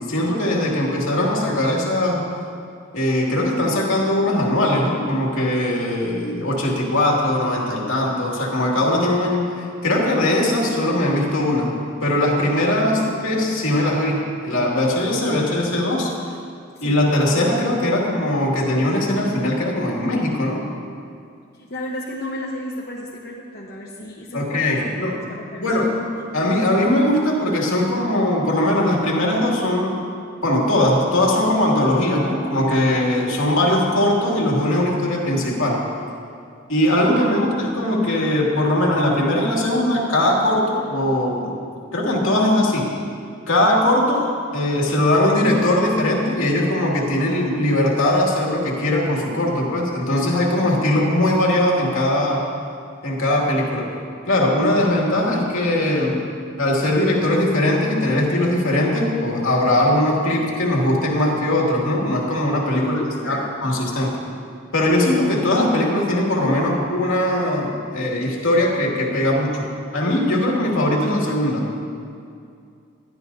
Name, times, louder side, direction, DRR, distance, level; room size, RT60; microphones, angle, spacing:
voice 1, 0.1-2.2 2.9-11.7 12.0-16.1 16.8-20.6 24.3-25.2 25.6-25.9 26.3-30.0 30.4-35.8 36.7-41.5 41.9-42.9 43.5-44.3 44.5-52.5 53.0-53.9 54.3-56.3 56.6-63.0 63.3-64.2 64.7-71.7, left 1 dB, 80° left, -3 dB, 2.5 m, -20 dB
voice 2, 21.6-25.8 26.2-26.6 37.1-37.4 50.1-50.4 50.6-51.0 62.7-63.5, equal, 50° left, -4 dB, 1.1 m, -33 dB
20.5 x 12.0 x 2.8 m, 2.4 s
head